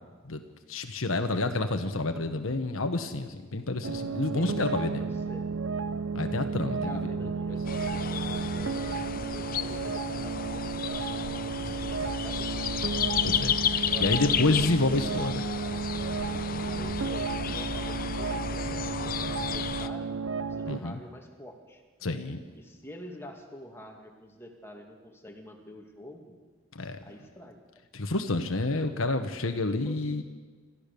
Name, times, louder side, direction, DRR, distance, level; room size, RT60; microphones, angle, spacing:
voice 1, 0.7-5.0 6.1-7.0 10.1-10.3 13.2-15.4 20.7-21.0 22.0-22.4 26.8-27.0 27.9-30.2, left 2 dB, 80° left, 7 dB, 1.2 m, -29 dB
sound 1, 3.8-20.8, right 5 dB, 70° right, 0.8 m, -33 dB
voice 2, 4.3-5.5 6.8-11.2 12.0-12.7 13.7-15.0 16.5-21.8 22.5-26.4 27.0-27.6 29.7-30.2, equal, 10° left, 2 dB, 2.4 m, -47 dB
sound 2, 7.7-19.9, left 7 dB, 45° left, 0.7 m, -32 dB
27.0 x 14.0 x 6.9 m, 1.5 s
head